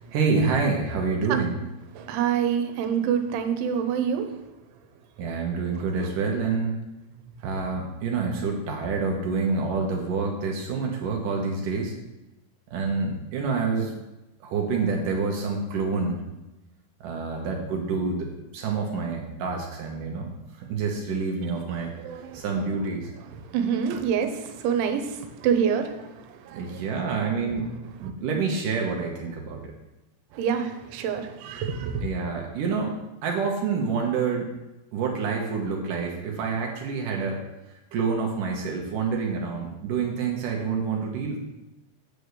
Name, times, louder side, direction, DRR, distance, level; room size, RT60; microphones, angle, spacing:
voice 1, 0.1-1.6 5.2-6.8 7.4-11.9 12.7-13.9 14.4-16.2 17.0-20.3 20.6-21.9 22.3-23.1 26.5-27.7 28.0-29.6 32.0-32.9 33.2-34.5 34.9-37.4 37.9-41.4, right 4 dB, 70° right, 0 dB, 2.1 m, -27 dB
voice 2, 2.0-4.3 22.0-22.4 23.5-26.8 30.3-31.9, right 7 dB, 85° right, 7 dB, 3.3 m, -26 dB
9.5 x 4.9 x 6.7 m, 0.98 s
omnidirectional pair, 5.3 m